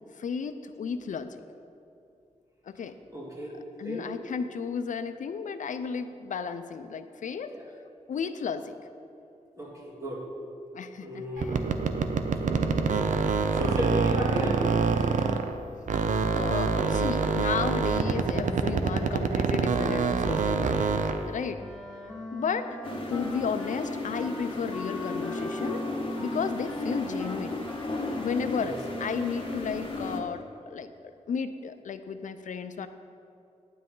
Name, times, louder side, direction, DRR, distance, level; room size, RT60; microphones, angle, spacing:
voice 1, 0.1-1.4 2.6-3.0 3.8-7.6 8.1-8.8 10.7-11.7 16.4-21.0 21.3-21.6 22.3-25.8 26.2-27.6 28.1-32.9, left 6 dB, 90° left, 10 dB, 0.5 m, -33 dB
voice 2, 3.1-3.5 3.8-4.0 7.5-7.7 9.6-10.2 11.0-11.7 13.5-15.2 28.6-28.8, equal, 25° right, -4 dB, 2.3 m, -34 dB
sound 1, 11.4-15.6 15.9-21.3, right 5 dB, 85° right, 0.5 m, -26 dB
Wind instrument woodwind instrument, 21.6-29.2, left 2 dB, ahead, 1.3 m, -41 dB
sound 2, 22.8-30.2, left 2 dB, 45° left, 1.4 m, -34 dB
9.8 x 9.2 x 3.8 m, 2.6 s
wide cardioid pair, 85°, 13 cm